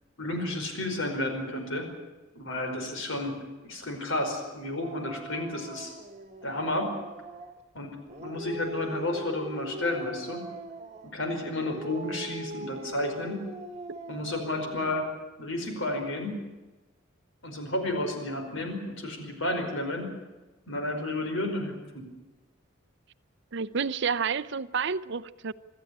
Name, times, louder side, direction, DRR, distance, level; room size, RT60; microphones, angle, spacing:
voice 1, 0.2-1.9 2.3-3.3 3.6-5.9 6.4-7.0 7.7-10.5 11.1-13.4 14.1-15.1 15.4-16.4 17.4-20.1 20.7-22.1, left 1 dB, 60° left, 4 dB, 5.0 m, -32 dB
Dog, 4.8-7.6 8.1-11.2 11.6-15.1, right 2 dB, 35° right, 1.7 m, -41 dB
voice 2, 23.5-25.5, right 6 dB, 55° right, 16 dB, 0.7 m, -29 dB
25.0 x 13.5 x 10.0 m, 1.2 s
head